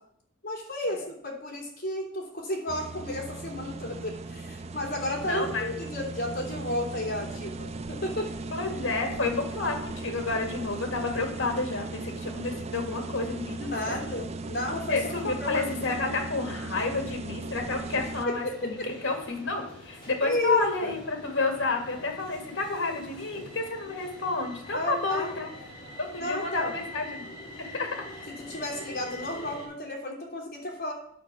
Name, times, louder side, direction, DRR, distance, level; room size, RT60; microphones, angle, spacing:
voice 1, 0.4-8.3 13.6-15.0 15.4-16.0 18.2-18.9 20.2-20.9 24.7-25.3 26.2-26.8 28.4-30.9, left 1 dB, 50° left, 0 dB, 3.1 m, -32 dB
sound 1, 2.7-18.3, right 3 dB, 35° right, 0.5 m, -37 dB
voice 2, 5.2-5.7 8.5-14.0 14.9-25.5 26.0-27.3 27.6-28.3, left 3 dB, 65° left, 4 dB, 2.1 m, -30 dB
sound 2, 18.0-29.7, left 1 dB, 20° left, 5.0 m, -45 dB
9.4 x 6.7 x 6.1 m, 0.69 s
head